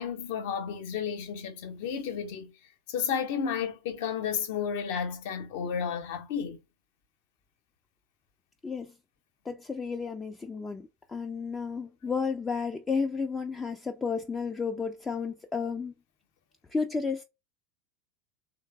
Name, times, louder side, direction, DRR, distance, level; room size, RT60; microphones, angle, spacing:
voice 1, 0.0-2.5 2.9-6.6, left 7 dB, 60° left, 0.8 m, -32 dB
voice 2, 9.5-15.9 16.7-17.2, left 5 dB, 15° left, 0.4 m, -32 dB
3.1 x 2.0 x 3.4 m
figure-of-eight pair, 80°, 0 cm